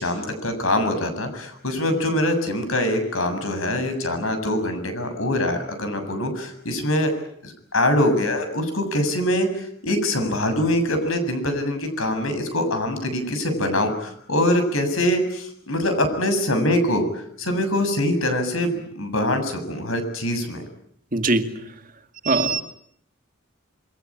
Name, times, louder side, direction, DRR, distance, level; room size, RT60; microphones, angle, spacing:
voice 1, 0.0-7.1 7.4-20.6, left 1 dB, 80° left, 8 dB, 7.4 m, -23 dB
voice 2, 21.1-21.7 22.2-22.6, right 3 dB, 40° right, 7 dB, 2.3 m, -22 dB
27.5 x 23.5 x 8.8 m, 0.70 s
head